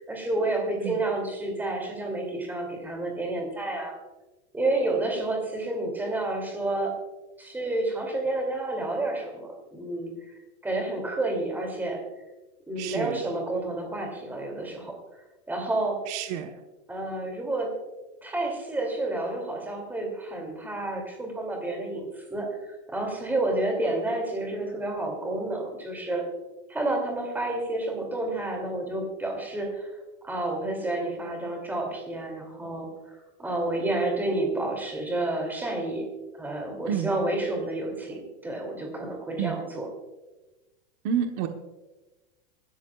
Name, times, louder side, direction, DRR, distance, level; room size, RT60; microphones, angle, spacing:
voice 1, 0.0-3.9 4.5-7.0 7.4-10.4 10.6-12.0 12.7-15.0 15.5-16.0 16.9-17.7 18.2-22.5 22.9-26.2 26.7-29.9 30.2-36.1 36.4-39.9, right 2 dB, 5° right, 1 dB, 2.6 m, -30 dB
voice 2, 12.8-13.2 16.1-16.5 36.9-37.2 39.4-39.6 41.0-41.5, right 9 dB, 40° right, 5 dB, 1.1 m, -29 dB
25.0 x 12.5 x 2.3 m, 1.1 s
supercardioid pair, 165°, 33 cm